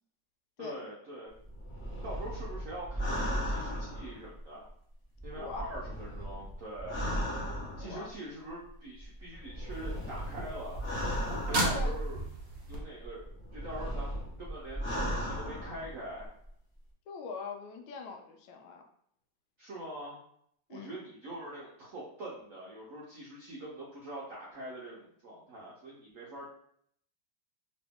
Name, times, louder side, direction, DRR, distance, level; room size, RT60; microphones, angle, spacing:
voice 1, 0.6-1.3 2.0-4.7 5.2-7.0 7.8-10.8 11.5-12.2 12.7-13.2 13.5-16.3 19.6-20.2 20.7-26.5, right 1 dB, 70° right, -5 dB, 0.7 m, -43 dB
sound 1, 1.4-4.7 5.2-8.1 9.0-12.2 12.8-16.2 16.4-16.5, equal, 15° left, 0.4 m, -36 dB
voice 2, 5.3-5.7 7.8-8.1 11.7-11.9 17.1-18.8 20.7-20.9, left 5 dB, 80° left, 4 dB, 1.3 m, -42 dB
sound 2, 9.7-12.8 16.3-16.4, right 1 dB, 55° right, 1.1 m, -35 dB
3.0 x 2.9 x 3.4 m, 0.67 s
omnidirectional pair, 2.3 m